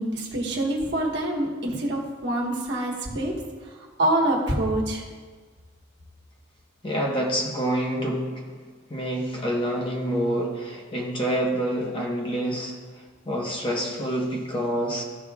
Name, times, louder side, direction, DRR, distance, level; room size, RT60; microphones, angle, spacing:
voice 1, 0.0-3.3 4.0-5.0, right 1 dB, 60° right, -2 dB, 1.5 m, -25 dB
voice 2, 6.8-8.3 8.9-12.8 13.2-15.0, right 1 dB, 25° left, -2 dB, 1.1 m, -27 dB
14.0 x 5.2 x 2.4 m, 1.5 s
head